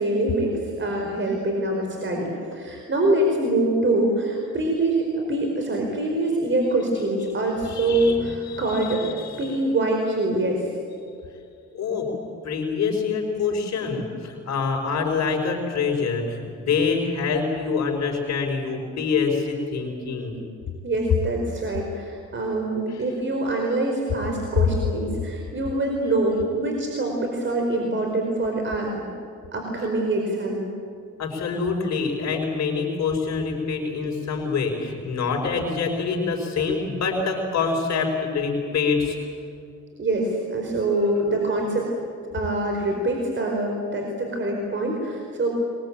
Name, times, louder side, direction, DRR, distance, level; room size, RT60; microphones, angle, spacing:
voice 1, 0.0-10.7 20.8-29.1 29.5-30.7 40.0-41.9 42.3-45.5, right 2 dB, 40° right, 1 dB, 4.8 m, -24 dB
voice 2, 7.7-8.2 8.5-9.5 11.7-12.1 12.4-20.4 31.2-39.2, left 5 dB, 60° left, 2 dB, 5.0 m, -26 dB
22.5 x 22.0 x 8.9 m, 2.5 s
cardioid pair, 90°, 30 cm